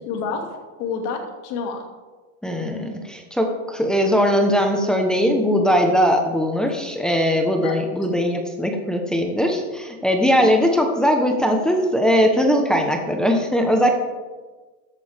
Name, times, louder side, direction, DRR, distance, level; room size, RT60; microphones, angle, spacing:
voice 1, 0.1-0.5 0.8-1.8 7.6-7.8, left 5 dB, 45° left, 3 dB, 2.4 m, -28 dB
voice 2, 2.4-13.9, equal, ahead, 2 dB, 1.1 m, -20 dB
14.5 x 10.5 x 3.6 m, 1.3 s
supercardioid pair, 145°, 39 cm